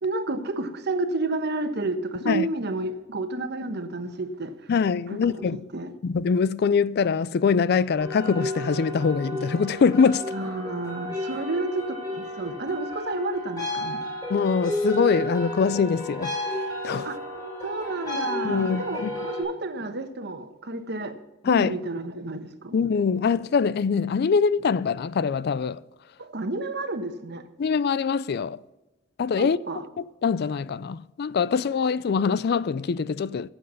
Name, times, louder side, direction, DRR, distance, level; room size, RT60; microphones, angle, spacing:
voice 1, 0.0-4.7 5.3-5.9 10.3-14.0 17.0-17.2 17.6-21.2 21.4-22.8 26.2-27.4 29.4-29.8, right 2 dB, 60° right, 1.2 m, -31 dB
voice 2, 4.7-5.6 6.0-10.2 14.3-16.4 16.8-17.1 18.4-19.1 21.4-21.7 22.7-25.8 27.6-28.6 29.2-29.6 30.0-33.5, left 5 dB, 55° left, 0.4 m, -23 dB
Singing Bowl 'Gamelan', 8.0-19.4, left 1 dB, 20° left, 5.3 m, -32 dB
14.5 x 7.8 x 5.5 m
head